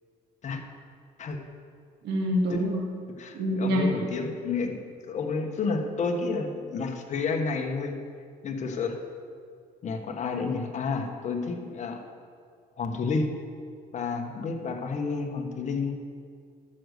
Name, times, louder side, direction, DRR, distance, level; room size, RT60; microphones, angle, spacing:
voice 1, 2.0-2.8 3.3-3.9, equal, 75° right, -2 dB, 2.2 m, -26 dB
voice 2, 3.2-8.0 8.4-9.0 9.8-12.0 12.8-13.4 13.9-16.0, left 4 dB, 45° left, 4 dB, 1.2 m, -30 dB
9.9 x 6.6 x 6.6 m, 2.2 s
cardioid pair, 110°, 17 cm